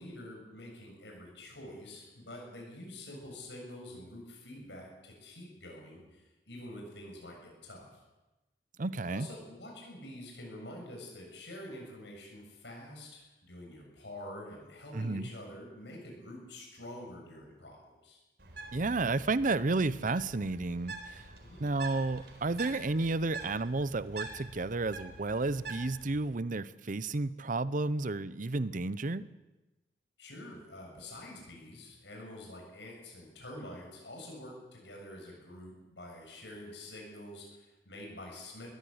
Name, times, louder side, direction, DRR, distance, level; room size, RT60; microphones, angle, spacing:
voice 1, 0.0-8.0 9.1-18.2 21.4-21.6 30.2-38.7, left 1 dB, 80° left, 0 dB, 7.4 m, -47 dB
voice 2, 8.8-9.3 14.9-15.3 18.7-21.3 21.6-29.3, right 3 dB, 50° right, 16 dB, 0.7 m, -32 dB
Bird, 18.4-26.2, right 3 dB, 65° right, 4.4 m, -46 dB
22.5 x 16.0 x 8.0 m, 1.1 s
head